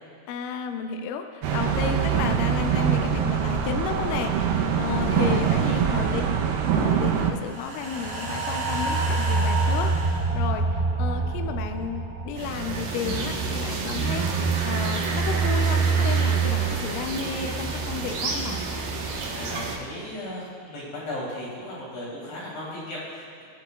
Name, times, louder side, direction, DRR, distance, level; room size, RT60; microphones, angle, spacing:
voice 1, 0.3-6.2 6.7-18.6, left 6 dB, 85° left, 6 dB, 1.9 m, -32 dB
sound 1, 1.4-7.3, right 7 dB, 90° right, 2.8 m, -24 dB
voice 2, 5.3-5.9 13.1-13.4 19.3-23.4, left 1 dB, 65° left, -6 dB, 4.7 m, -36 dB
sound 2, 7.4-13.8 14.2-14.3, right 3 dB, 45° right, 1.1 m, -27 dB
sound 3, 12.4-19.8, right 5 dB, 70° right, 2.8 m, -26 dB
21.0 x 8.0 x 2.3 m, 2.4 s
omnidirectional pair, 4.5 m